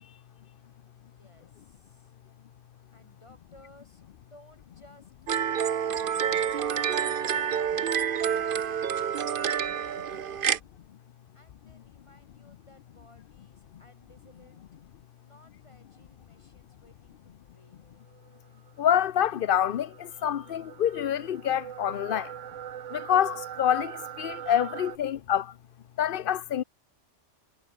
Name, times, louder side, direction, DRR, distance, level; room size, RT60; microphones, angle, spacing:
voice 1, 1.0-2.2 2.9-6.6 7.1-10.7 11.3-14.8 15.2-18.0, left 1 dB, 25° left, 8.0 m, -58 dB
sound 1, 5.3-10.6, right 8 dB, 50° right, 0.9 m, -28 dB
sound 2, 18.1-25.0, right 10 dB, 85° right, 1.1 m, -42 dB
voice 2, 18.8-22.3 22.9-25.6 26.0-26.6, left 10 dB, 55° left, 0.7 m, -27 dB
omnidirectional pair, 1.2 m